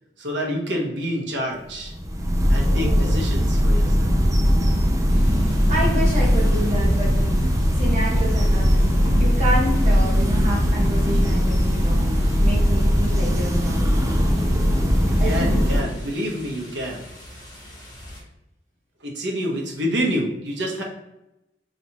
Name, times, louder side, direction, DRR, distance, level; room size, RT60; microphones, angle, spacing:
voice 1, 0.2-1.9 2.5-4.1 15.0-17.1 19.0-20.8, equal, 90° right, -1 dB, 1.1 m, -28 dB
sound 1, 1.7-15.8, equal, 20° right, 0.4 m, -19 dB
voice 2, 2.7-3.2 5.7-7.5 7.8-14.3 15.2-16.0, equal, 40° right, -5 dB, 1.4 m, -29 dB
sound 2, 5.1-18.2, equal, 25° left, 1.1 m, -33 dB
4.1 x 3.2 x 2.9 m, 0.91 s
head